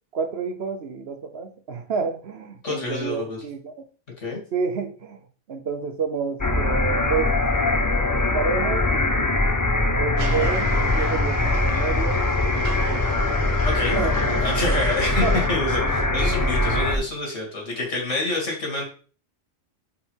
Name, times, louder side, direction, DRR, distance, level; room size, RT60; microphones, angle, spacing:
voice 1, 0.1-3.8 4.5-5.2 5.5-7.4 7.8-9.5 9.9-12.2 12.5-13.6 13.9-14.9 15.2-15.6 16.7-17.1, right 5 dB, 60° right, 1.1 m, -30 dB
voice 2, 2.6-3.4 4.2-4.4 13.7-14.1 14.4-18.8, left 2 dB, 75° left, 2.5 m, -27 dB
sound 1, 6.4-17.0, left 2 dB, 25° left, 0.5 m, -22 dB
sound 2, 10.2-15.5, right 5 dB, 80° right, 1.2 m, -36 dB
5.5 x 5.0 x 4.6 m
omnidirectional pair, 1.3 m